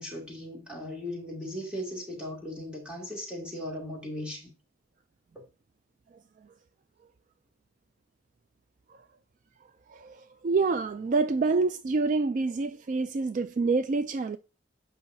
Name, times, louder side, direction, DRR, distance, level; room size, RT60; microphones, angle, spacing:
voice 1, 0.0-4.5, left 1 dB, 5° right, 2.4 m, -37 dB
voice 2, 9.9-14.4, right 3 dB, 40° right, 0.3 m, -27 dB
8.8 x 5.5 x 2.7 m
head